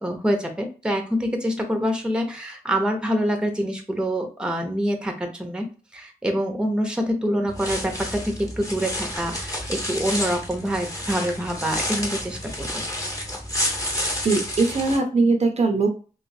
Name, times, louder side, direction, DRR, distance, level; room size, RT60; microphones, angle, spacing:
voice 1, 0.0-12.8, equal, 5° right, 4 dB, 0.7 m, -26 dB
sound 1, 7.5-15.0, left 1 dB, 20° left, 1.1 m, -30 dB
voice 2, 14.2-15.9, right 3 dB, 45° right, 4 dB, 0.6 m, -20 dB
3.1 x 2.9 x 2.7 m, 0.37 s
wide cardioid pair, 95°, 15 cm